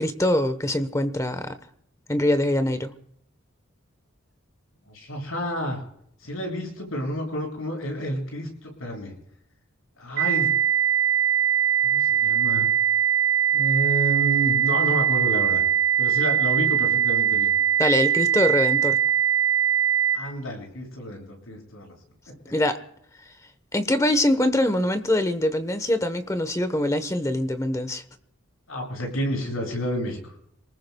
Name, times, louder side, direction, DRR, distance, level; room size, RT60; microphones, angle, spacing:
voice 1, 0.0-1.6 2.1-2.9 17.8-19.0 22.5-22.8 23.7-28.0, left 1 dB, 15° left, 10 dB, 1.1 m, -23 dB
voice 2, 4.9-5.8 6.2-9.1 10.0-10.5 11.8-12.7 13.5-15.6 16.0-17.5 20.1-21.9 28.7-30.2, equal, 85° left, 1 dB, 7.4 m, -30 dB
sound 1, 10.2-20.2, right 9 dB, 70° right, 2.9 m, -21 dB
27.0 x 20.0 x 2.3 m, 0.71 s
head